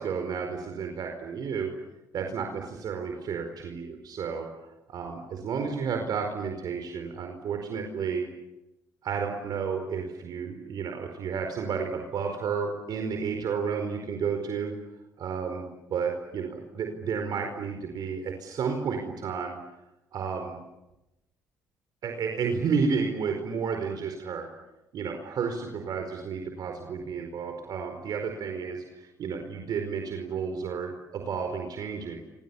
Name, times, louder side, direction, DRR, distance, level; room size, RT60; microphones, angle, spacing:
voice 1, 0.0-1.7 2.1-4.5 4.9-8.2 9.0-14.7 15.2-15.6 15.9-19.6 20.1-20.6 22.0-24.5 24.9-32.3, right 6 dB, 60° right, 4 dB, 4.7 m, -31 dB
29.5 x 27.0 x 7.2 m, 0.95 s
supercardioid pair, 65°, 8 cm